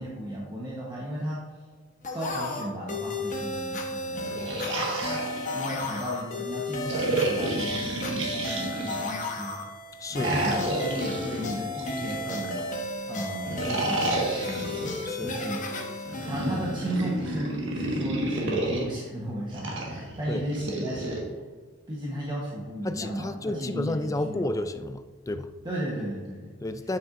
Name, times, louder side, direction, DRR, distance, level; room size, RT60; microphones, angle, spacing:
voice 1, 0.0-1.4 2.1-4.5 5.5-9.6 10.2-12.6 13.1-15.6 16.2-21.2 21.9-24.5 25.6-26.6, equal, 25° right, -5 dB, 1.1 m, -35 dB
sound 1, 2.0-17.5, left 2 dB, 40° left, 1.0 m, -34 dB
sound 2, 4.1-6.0 6.9-9.2 10.1-12.6 13.4-15.1 16.0-18.8 19.5-21.2, right 2 dB, 65° right, 1.7 m, -31 dB
voice 2, 10.0-10.7 15.0-15.4 20.3-20.4 22.8-25.5 26.6-27.0, left 1 dB, 15° left, 10 dB, 0.3 m, -31 dB
8.4 x 7.5 x 2.6 m, 1.5 s
head